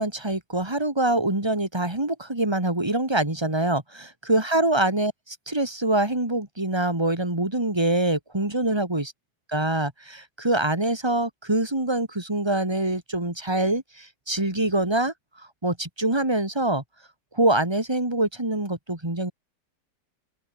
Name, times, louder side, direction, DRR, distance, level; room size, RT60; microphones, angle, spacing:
voice 1, 0.0-9.1 9.5-15.1 15.6-16.8 17.3-19.3, right 1 dB, 15° right, 3.3 m, -25 dB
omnidirectional pair, 1.9 m